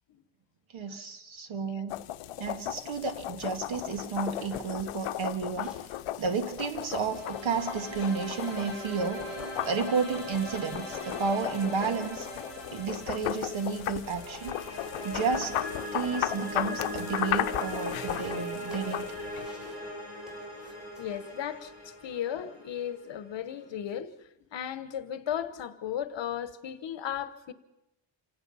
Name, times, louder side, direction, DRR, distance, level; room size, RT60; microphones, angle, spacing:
voice 1, 0.7-2.0 2.4-5.8 6.2-9.3 9.6-12.3 12.7-14.6 15.0-15.6 15.9-19.0, right 5 dB, 70° right, 2.1 m, -32 dB
sound 1, 1.9-19.5, left 14 dB, 85° left, 0.7 m, -36 dB
sound 2, 3.8-22.1, left 1 dB, ahead, 6.8 m, -54 dB
sound 3, 6.5-23.6, equal, 30° right, 6.5 m, -40 dB
voice 2, 21.0-24.1 24.5-27.5, left 9 dB, 60° left, 1.2 m, -35 dB
27.0 x 17.5 x 5.7 m
wide cardioid pair, 160°, 49 cm